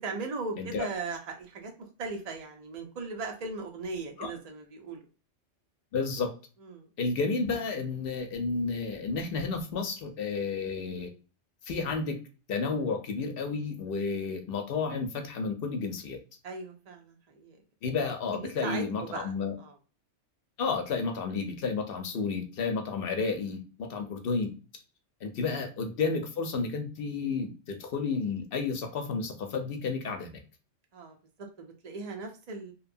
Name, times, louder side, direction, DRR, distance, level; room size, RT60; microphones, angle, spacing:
voice 1, 0.0-1.7 2.0-5.0 6.6-6.9 16.4-17.6 18.3-19.8 25.5-25.6 30.9-32.7, right 3 dB, 70° right, 2 dB, 0.3 m, -38 dB
voice 2, 5.9-6.3 7.0-11.1 11.6-12.2 12.5-16.2 17.8-19.5 20.6-24.5 25.2-30.4, left 4 dB, 60° left, 5 dB, 0.6 m, -31 dB
2.7 x 2.2 x 2.5 m, 0.34 s
omnidirectional pair, 1.3 m